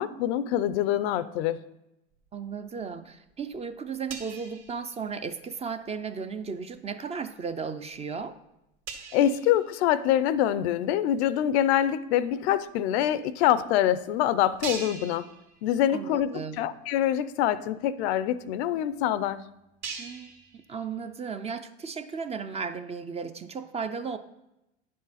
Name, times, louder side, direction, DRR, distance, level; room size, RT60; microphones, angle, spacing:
voice 1, 0.0-1.6 9.1-15.3 15.6-16.3 16.6-19.4, left 11 dB, 85° left, 15 dB, 0.6 m, -25 dB
sound 1, 2.2-3.0 3.3-5.5 5.8-6.1 6.6-6.9 7.5-7.6 7.9-8.0 8.2-8.3 8.9-10.5 11.1-11.2 12.3-12.4 12.6-12.7 13.4-13.5 13.9-14.0 14.6-16.0 16.4-16.5 17.0-17.1 17.3-21.1, right 5 dB, 55° right, 1.6 m, -43 dB
voice 2, 2.3-8.3 15.9-16.6 20.0-20.4 20.7-24.2, right 5 dB, 20° right, 10 dB, 0.4 m, -35 dB
9.6 x 6.5 x 4.1 m, 0.89 s
supercardioid pair, 115°, 32 cm